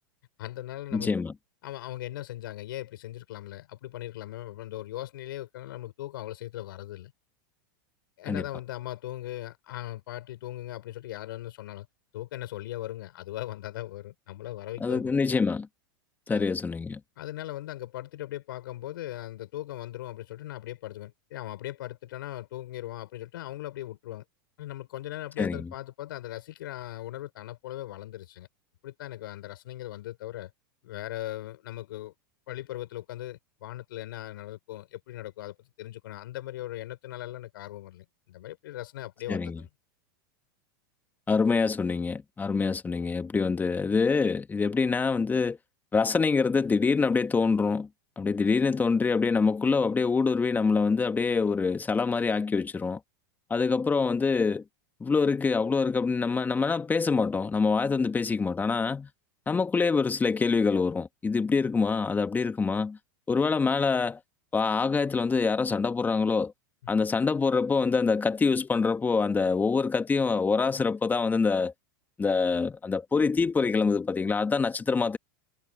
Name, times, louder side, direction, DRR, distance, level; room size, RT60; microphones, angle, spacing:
voice 1, 0.4-1.1 1.6-7.1 8.2-11.9 12.1-15.1 16.3-16.4 17.2-24.2 24.6-28.5 28.8-30.5 30.8-32.1 32.5-39.7, left 14 dB, 75° left, 6.9 m, -39 dB
voice 2, 0.9-1.3 8.3-8.4 14.8-15.7 16.3-17.0 25.4-25.7 39.3-39.6 41.3-45.6 45.9-47.9 48.2-53.0 53.5-54.6 55.0-59.1 59.5-63.0 63.3-64.2 64.5-66.5 66.9-71.7 72.2-75.2, left 4 dB, 15° left, 1.8 m, -25 dB
hypercardioid pair, 110°, 12 cm